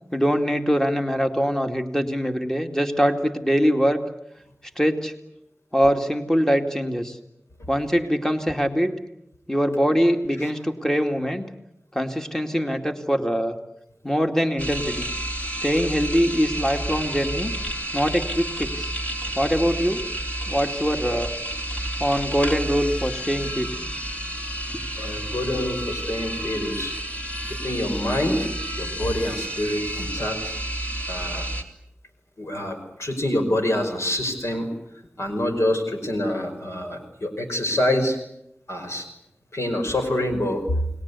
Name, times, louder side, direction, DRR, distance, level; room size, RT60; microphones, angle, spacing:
voice 1, 0.1-4.0 4.8-5.1 5.7-7.2 7.7-8.9 9.5-11.4 11.9-13.6 14.0-15.1 15.6-17.5 17.9-18.9 19.4-20.0 20.5-21.3 22.0-23.7, equal, 10° left, 5 dB, 2.5 m, -23 dB
sound 1, 14.6-31.6, right 1 dB, 30° left, 3.5 m, -30 dB
voice 2, 25.0-26.9 27.6-28.5 28.8-30.5 31.1-31.5 32.4-34.7 35.2-38.2 38.7-39.1 39.5-40.6, left 1 dB, 85° left, 5 dB, 5.3 m, -26 dB
29.5 x 20.5 x 8.4 m, 0.80 s
wide cardioid pair, 40°, 5 cm